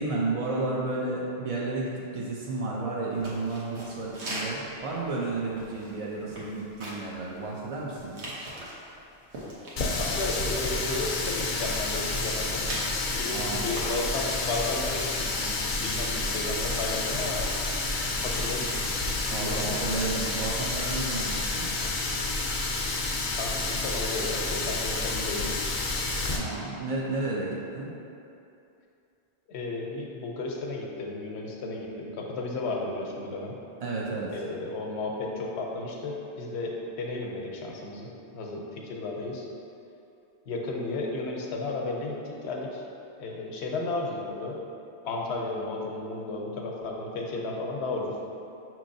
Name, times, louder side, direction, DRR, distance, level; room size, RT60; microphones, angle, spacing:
voice 1, 0.0-8.3 13.3-13.7 19.3-21.7 26.3-27.9 33.8-34.3, right 3 dB, 65° right, -4 dB, 0.3 m, -32 dB
sound 1, 3.1-21.4, right 1 dB, 80° right, 1.1 m, -44 dB
Water tap faucet, 9.8-26.4, left 3 dB, 60° left, 0.6 m, -29 dB
voice 2, 10.0-12.7 13.1-17.4 18.2-18.9 19.3-19.8 23.3-25.8 29.5-33.5 34.3-38.1 38.3-39.5 40.5-42.8 43.2-44.6 45.0-48.2, left 2 dB, 80° left, -1 dB, 0.9 m, -33 dB
6.0 x 3.0 x 2.6 m, 2.7 s
omnidirectional pair, 1.1 m